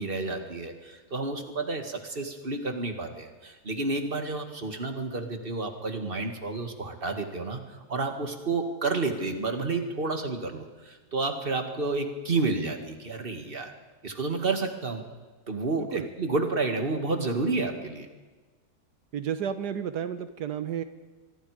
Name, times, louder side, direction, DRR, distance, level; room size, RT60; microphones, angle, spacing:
voice 1, 0.0-7.6 7.9-13.7 14.0-15.0 15.5-18.1, right 3 dB, 35° right, 5 dB, 2.3 m, -30 dB
voice 2, 19.1-20.8, right 8 dB, 85° right, 11 dB, 1.6 m, -31 dB
25.0 x 22.5 x 5.0 m, 1.4 s
omnidirectional pair, 1.7 m